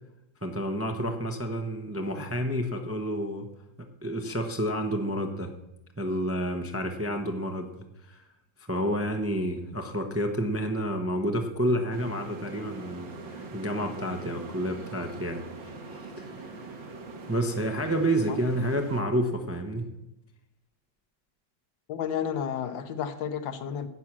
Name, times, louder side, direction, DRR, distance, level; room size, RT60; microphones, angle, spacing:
voice 1, 0.4-3.5 3.8-5.5 6.0-8.2 8.7-15.4 15.9-16.7 17.3-19.9, equal, 15° right, 5 dB, 0.6 m, -30 dB
sound 1, 11.9-19.0, right 3 dB, 85° right, 2.2 m, -42 dB
voice 2, 21.9-23.9, left 8 dB, 85° left, 10 dB, 1.6 m, -31 dB
12.5 x 8.5 x 6.1 m, 0.89 s
omnidirectional pair, 2.0 m